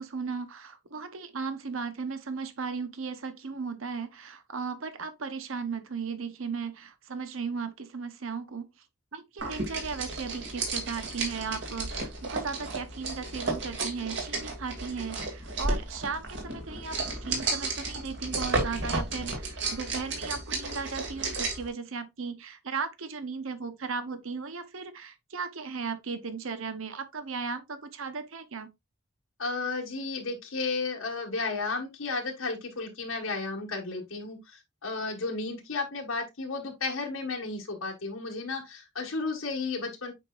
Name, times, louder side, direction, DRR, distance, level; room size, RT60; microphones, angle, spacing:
voice 1, 0.0-8.8 9.1-28.7, right 5 dB, 75° right, 0.9 m, -36 dB
sound 1, 9.4-21.7, right 3 dB, 55° right, 2.4 m, -33 dB
voice 2, 29.4-40.1, left 3 dB, 80° left, 1.6 m, -33 dB
8.2 x 5.0 x 2.4 m
head